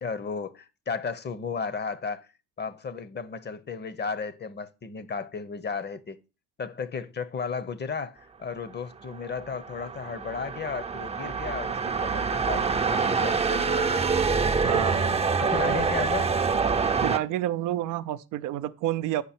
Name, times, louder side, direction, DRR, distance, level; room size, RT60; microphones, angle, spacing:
voice 1, 0.0-2.3 2.6-6.2 6.6-13.9 15.4-16.3, left 5 dB, 35° left, 0.8 m, -34 dB
sound 1, 9.2-17.2, right 5 dB, 20° right, 0.5 m, -26 dB
voice 2, 14.4-15.2 17.0-19.2, right 13 dB, 85° right, 0.5 m, -29 dB
8.1 x 5.4 x 4.3 m
cardioid pair, 90°, 30 cm